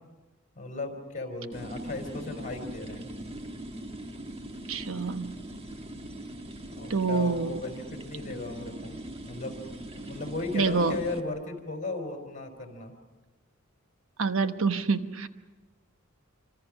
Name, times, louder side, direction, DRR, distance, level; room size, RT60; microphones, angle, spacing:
voice 1, 0.5-3.1 6.7-9.0 9.2-9.6 9.9-12.9, left 2 dB, 40° left, 5 dB, 4.4 m, -36 dB
sound 1, 1.5-11.2, right 1 dB, 30° right, 1.5 m, -41 dB
voice 2, 4.7-5.5 6.9-7.6 10.5-11.0 14.2-15.3, right 4 dB, 70° right, 9 dB, 1.1 m, -27 dB
27.0 x 25.5 x 6.3 m, 1.2 s
head